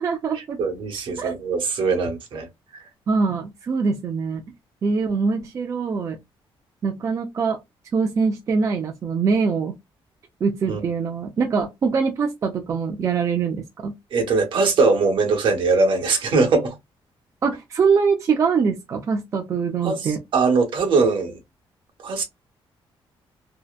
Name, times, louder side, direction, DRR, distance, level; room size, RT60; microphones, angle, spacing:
voice 1, 0.0-0.6 1.2-1.3 3.1-4.4 4.8-6.2 6.8-7.6 7.9-9.8 10.4-14.0 17.4-20.2, right 5 dB, 35° right, 0.3 m, -23 dB
voice 2, 0.6-2.5 10.6-10.8 14.1-16.7 19.8-21.4 22.0-22.2, right 4 dB, 60° right, 1.0 m, -21 dB
2.7 x 2.1 x 2.3 m
wide cardioid pair, 180°, 10 cm